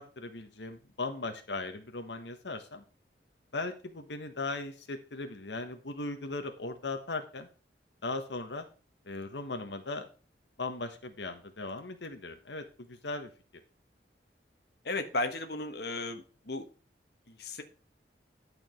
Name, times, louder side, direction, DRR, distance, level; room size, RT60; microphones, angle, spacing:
voice 1, 0.0-2.8 3.5-7.5 8.0-8.7 9.1-10.0 10.6-13.3, left 3 dB, 85° left, 6 dB, 1.3 m, -38 dB
voice 2, 14.8-16.7 17.3-17.6, left 2 dB, 65° left, 6 dB, 1.3 m, -35 dB
11.0 x 5.1 x 6.2 m, 0.36 s
head